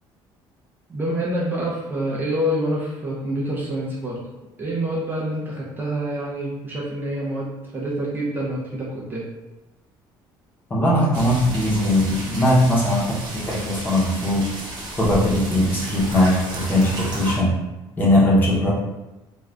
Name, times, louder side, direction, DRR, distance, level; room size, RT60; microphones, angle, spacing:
voice 1, 0.9-4.2 4.6-9.3, right 1 dB, 20° right, -5 dB, 0.5 m, -27 dB
voice 2, 10.7-14.5 15.0-17.5 18.0-18.7, left 1 dB, 20° left, -6 dB, 0.8 m, -19 dB
sound 1, 11.1-17.4, right 1 dB, 50° right, 0.9 m, -33 dB
2.5 x 2.3 x 3.2 m, 1.0 s
cardioid pair, 145°, 9 cm